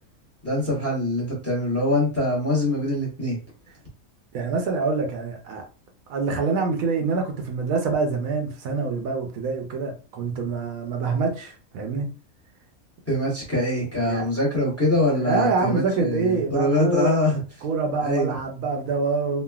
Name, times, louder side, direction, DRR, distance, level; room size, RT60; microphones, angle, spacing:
voice 1, 0.4-3.4 13.1-17.4 18.0-18.3, left 1 dB, 10° left, 0.8 m, -23 dB
voice 2, 4.3-5.6 6.1-12.1 14.1-14.3 15.2-17.1 17.6-19.4, right 4 dB, 75° right, 1.0 m, -25 dB
3.2 x 2.1 x 2.2 m
omnidirectional pair, 1.5 m